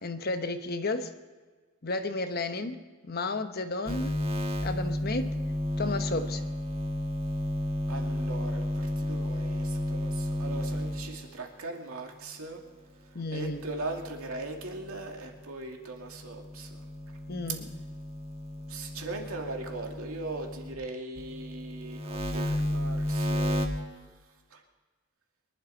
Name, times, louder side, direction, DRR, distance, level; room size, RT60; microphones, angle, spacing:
voice 1, 0.0-1.1 1.8-2.8 3.0-4.2 4.6-5.3 5.8-6.4 13.1-13.6 17.3-17.6, left 2 dB, 45° left, 8 dB, 1.0 m, -32 dB
sound 1, 3.9-11.3 13.3-15.5 16.0-20.7 21.2-23.7, left 1 dB, 25° right, 1.4 m, -33 dB
voice 2, 7.9-12.6 13.3-16.9 18.7-23.8 24.5-24.6, right 2 dB, 75° right, 1 dB, 2.3 m, -39 dB
24.0 x 11.5 x 4.1 m, 1.4 s
head